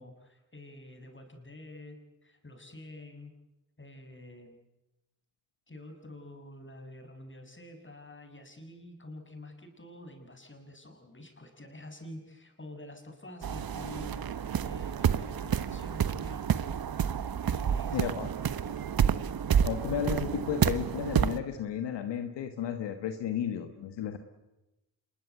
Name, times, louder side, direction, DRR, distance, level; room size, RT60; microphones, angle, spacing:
voice 1, 0.0-3.3 3.8-4.6 5.7-16.6 17.5-18.6, left 1 dB, 30° left, 5 dB, 6.3 m, -48 dB
sound 1, 13.4-21.4, right 8 dB, 55° right, 1.2 m, -29 dB
voice 2, 17.9-18.3 19.6-24.2, left 9 dB, 80° left, 8 dB, 1.5 m, -33 dB
26.0 x 22.0 x 8.2 m, 0.97 s
supercardioid pair, 40°, 42 cm